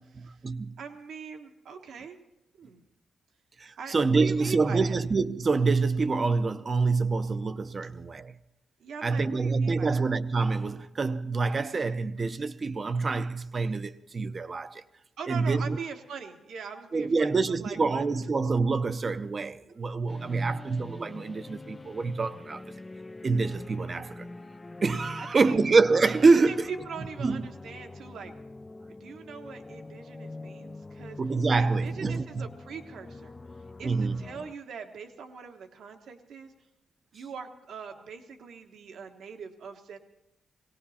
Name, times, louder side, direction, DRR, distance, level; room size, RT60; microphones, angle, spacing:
voice 1, 0.2-0.8 3.6-8.3 9.0-14.8 15.3-15.8 16.9-22.6 23.2-24.3 24.8-26.7 27.2-27.4 31.2-32.5 33.8-34.2, right 4 dB, 40° right, 0.7 m, -26 dB
voice 2, 0.8-2.2 2.6-2.8 3.8-5.0 8.8-10.0 15.2-18.1 25.2-25.6 26.5-28.3 28.9-31.2 31.6-33.3 33.8-36.5 37.1-40.0, right 6 dB, 75° right, 1.3 m, -42 dB
sound 1, 20.1-34.6, left 2 dB, 25° left, 0.5 m, -44 dB
19.0 x 17.5 x 4.3 m
cardioid pair, 75°, 0 cm